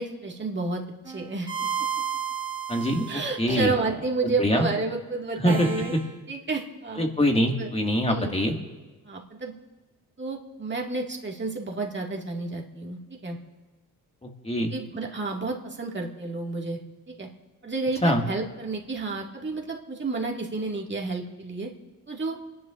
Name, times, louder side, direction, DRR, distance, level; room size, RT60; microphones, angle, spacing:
voice 1, 0.0-1.7 3.1-5.9 6.3-7.1 7.6-7.7 8.1-8.3 9.0-9.5 10.2-13.4 14.6-16.8 17.1-17.3 17.6-21.7 22.1-22.4, right 3 dB, 30° right, 0 dB, 2.0 m, -31 dB
sound 1, 1.0-4.1 5.5-6.1, right 8 dB, 10° right, 2.3 m, -33 dB
voice 2, 2.7-3.7 4.2-4.7 5.4-5.7 7.0-8.6 14.2-14.7 18.0-18.3, equal, 15° left, 2 dB, 1.9 m, -24 dB
29.5 x 11.0 x 2.5 m, 1.2 s
cardioid pair, 65°, 37 cm